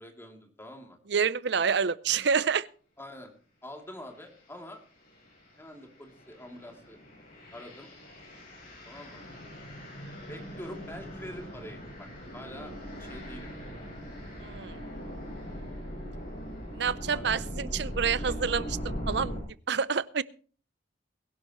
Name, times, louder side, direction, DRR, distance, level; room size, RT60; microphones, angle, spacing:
voice 1, 0.0-1.0 3.0-3.3 3.6-4.8 5.6-7.0 7.5-7.9 8.8-9.2 10.3-12.1 12.3-12.7 13.0-13.5 17.1-17.7 18.2-18.3, left 1 dB, 15° left, 2 dB, 2.9 m, -45 dB
voice 2, 1.1-2.7 14.4-14.8 16.7-19.3 19.7-20.2, right 6 dB, 65° right, 18 dB, 0.6 m, -28 dB
sound 1, 4.1-4.4 5.0-19.4, equal, 50° left, 7.5 m, -40 dB
22.0 x 11.0 x 3.1 m, 0.41 s
head